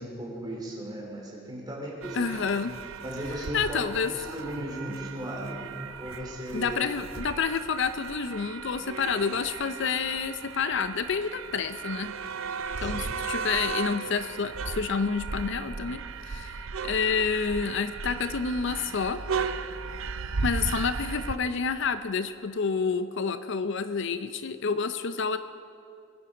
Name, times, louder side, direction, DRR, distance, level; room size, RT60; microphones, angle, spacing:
voice 1, 0.0-2.6 3.0-6.8 12.8-13.1, right 1 dB, 20° right, -2 dB, 3.4 m, -37 dB
sound 1, 2.0-21.4, right 5 dB, 80° right, 0.6 m, -36 dB
voice 2, 2.1-2.8 3.5-4.1 6.5-12.1 12.8-19.2 20.4-25.4, left 5 dB, 60° left, 11 dB, 0.6 m, -29 dB
22.5 x 10.5 x 4.9 m, 2.4 s
head